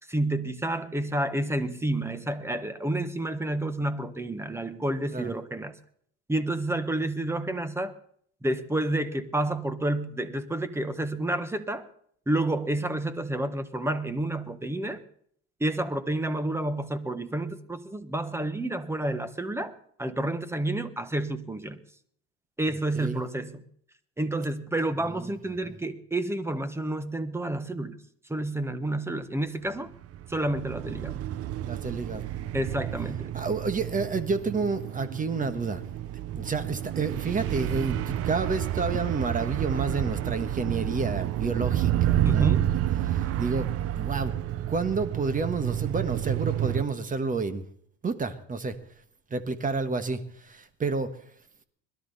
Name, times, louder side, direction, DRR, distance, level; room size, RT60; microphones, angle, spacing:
voice 1, 0.1-5.7 6.3-7.9 8.4-11.9 12.3-15.0 15.6-21.8 22.6-23.6 24.2-28.0 28.3-29.9 30.3-31.2 32.5-33.4 38.9-39.0 42.2-42.8, right 1 dB, 5° right, 12 dB, 1.3 m, -30 dB
sound 1, 29.9-46.8, right 13 dB, 45° right, 0.7 m, -30 dB
voice 2, 31.6-32.3 33.3-35.8 36.3-42.6 43.1-43.7 44.0-47.6 48.0-48.8 49.3-51.2, right 4 dB, 25° right, 11 dB, 1.4 m, -30 dB
21.5 x 13.0 x 4.1 m, 0.63 s
supercardioid pair, 115°, 34 cm